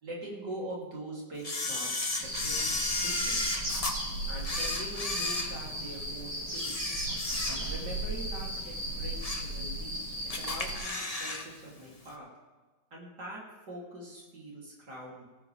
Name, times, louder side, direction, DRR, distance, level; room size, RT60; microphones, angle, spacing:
voice 1, 0.0-3.4 4.3-10.0 10.4-12.3 12.9-13.4 13.7-15.2, right 1 dB, 70° right, -4 dB, 3.7 m, -43 dB
Camera, 1.4-3.9 4.4-6.1 6.5-7.9 8.3-8.4 8.9-9.5 9.9-10.0 10.3-11.5 11.7-11.8, left 2 dB, 25° left, 1.1 m, -33 dB
sound 1, 2.2-10.8, right 1 dB, 45° right, 5.8 m, -36 dB
19.0 x 14.0 x 3.5 m, 1.3 s
omnidirectional pair, 1.9 m